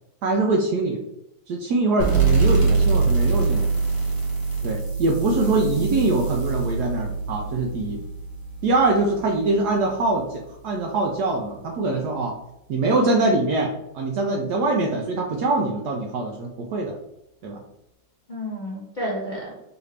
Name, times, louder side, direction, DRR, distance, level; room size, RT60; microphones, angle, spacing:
voice 1, 0.2-1.0 1.5-3.7 4.6-8.0 8.6-12.4 12.7-17.0 17.4-17.6, right 2 dB, 70° right, 1 dB, 1.0 m, -23 dB
sound 1, 2.0-9.3, right 4 dB, 15° right, 0.9 m, -23 dB
voice 2, 5.4-5.9 18.3-19.5, equal, 40° left, -7 dB, 0.6 m, -31 dB
4.8 x 2.6 x 3.2 m, 0.86 s
omnidirectional pair, 2.1 m